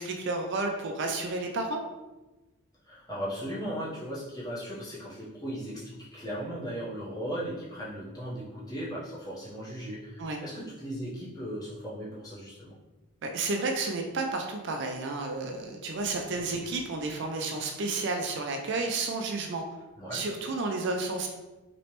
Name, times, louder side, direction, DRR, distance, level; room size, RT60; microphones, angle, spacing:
voice 1, 0.0-1.8 10.2-10.4 13.2-19.6 20.1-21.3, right 3 dB, 50° right, 3 dB, 0.3 m, -31 dB
voice 2, 2.8-12.8 16.4-16.7 20.0-20.2, equal, 15° left, -8 dB, 0.9 m, -37 dB
3.1 x 2.9 x 2.9 m, 1.1 s
head